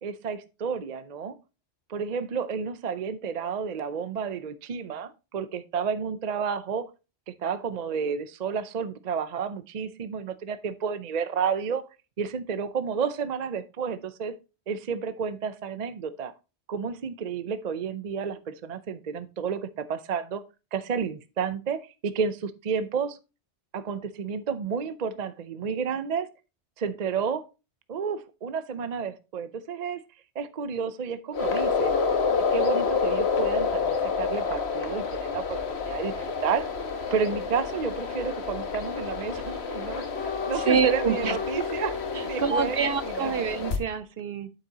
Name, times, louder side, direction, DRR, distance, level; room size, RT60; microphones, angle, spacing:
voice 1, 0.0-1.4 1.9-6.9 7.3-11.9 12.2-14.4 14.7-16.3 16.7-20.4 20.7-23.2 23.7-26.3 26.8-27.5 27.9-30.0 30.3-32.0 32.5-35.6 35.9-36.1 36.4-36.7 37.1-43.5, right 6 dB, 45° right, 0.6 m, -31 dB
sound 1, 31.3-43.8, left 5 dB, 70° left, 1.4 m, -28 dB
voice 2, 40.6-41.4 42.1-44.5, right 6 dB, 65° right, 1.0 m, -26 dB
8.9 x 7.3 x 2.8 m
omnidirectional pair, 1.2 m